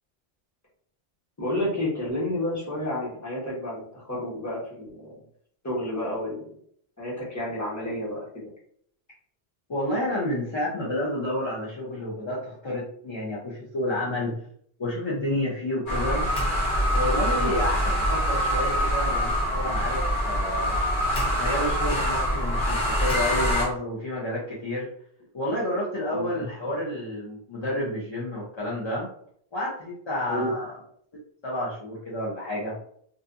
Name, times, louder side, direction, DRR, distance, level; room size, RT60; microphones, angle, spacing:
voice 1, 1.4-5.2 5.6-6.5 7.0-8.4 17.3-17.5 26.1-26.3 30.3-30.5, left 1 dB, 20° left, -6 dB, 0.9 m, -30 dB
voice 2, 9.7-14.4 14.8-16.3 16.9-20.8 21.4-24.9 25.3-29.1 29.5-30.8 31.4-32.8, left 1 dB, 35° left, -6 dB, 0.5 m, -30 dB
sound 1, 15.9-23.6, equal, 55° left, 0.9 m, -24 dB
2.5 x 2.4 x 2.5 m, 0.63 s
omnidirectional pair, 1.1 m